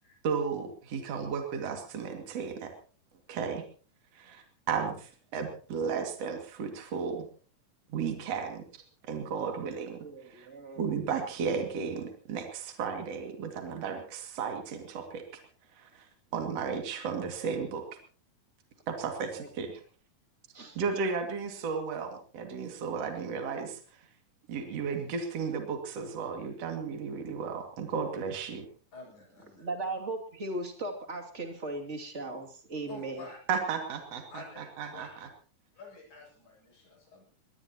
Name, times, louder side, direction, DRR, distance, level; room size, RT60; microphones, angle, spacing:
voice 1, 0.2-2.7 3.3-3.6 4.1-7.3 7.9-8.6 9.1-10.0 10.2-10.5 10.8-15.2 15.7-16.1 16.3-17.8 18.9-19.8 20.7-23.8 24.5-28.7 33.5-35.3, right 6 dB, 50° right, 4 dB, 3.3 m, -34 dB
voice 2, 10.0-10.9 16.4-16.7 19.4-19.5 20.5-20.8 29.5-33.2, right 2 dB, 20° right, 3 dB, 2.5 m, -38 dB
voice 3, 28.9-29.7 32.9-33.4 34.3-35.2 35.8-37.2, left 3 dB, 65° left, -1 dB, 8.9 m, -48 dB
23.0 x 19.5 x 3.0 m, 0.41 s
omnidirectional pair, 3.8 m